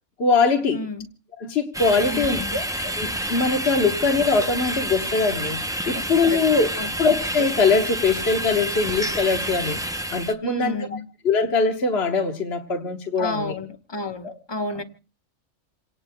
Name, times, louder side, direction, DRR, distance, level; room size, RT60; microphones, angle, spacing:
voice 1, 0.2-0.8 1.4-5.6 5.9-6.7 7.0-9.8 10.1-10.7 11.2-13.5 14.2-14.3 14.6-14.8, left 4 dB, 60° left, 1.5 m, -22 dB
voice 2, 0.7-1.1 2.0-2.6 5.9-6.0 6.3-6.4 6.8-6.9 10.4-11.1 13.2-14.8, left 2 dB, 20° left, 1.0 m, -31 dB
sound 1, 1.7-10.3, right 1 dB, 5° right, 0.3 m, -29 dB
28.0 x 18.5 x 2.2 m
omnidirectional pair, 1.2 m